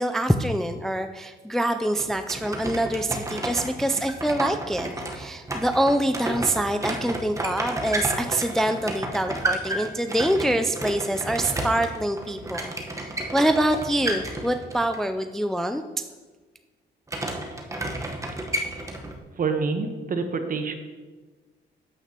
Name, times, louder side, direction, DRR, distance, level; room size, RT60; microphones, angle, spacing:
voice 1, 0.0-4.9 5.1-12.7 13.1-15.8, right 1 dB, ahead, 7 dB, 0.4 m, -25 dB
sound 1, 2.0-15.0 17.1-19.2, right 1 dB, 15° right, 1.1 m, -32 dB
voice 2, 19.3-20.8, right 4 dB, 45° right, 7 dB, 1.0 m, -27 dB
9.1 x 7.8 x 2.9 m, 1.3 s
cardioid pair, 90°, 20 cm